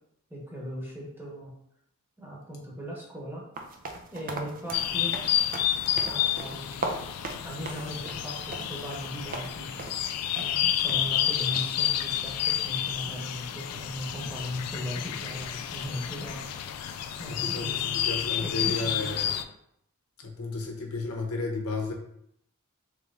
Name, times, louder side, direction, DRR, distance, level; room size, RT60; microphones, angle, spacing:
voice 1, 0.3-1.5 2.2-3.5 4.1-5.2 6.0-6.9 7.4-9.7 10.4-16.5 17.2-18.0 18.4-19.1, equal, 10° right, -4 dB, 1.1 m, -38 dB
sound 1, 3.6-9.5 9.8-10.1 10.4-10.5 10.9-11.0 11.5-11.8, right 2 dB, 40° right, 0.5 m, -38 dB
sound 2, 4.7-19.4, left 11 dB, 90° left, 0.3 m, -30 dB
voice 2, 17.2-19.4 20.2-21.9, left 3 dB, 70° left, 1 dB, 0.8 m, -33 dB
3.3 x 3.1 x 3.7 m, 0.73 s
head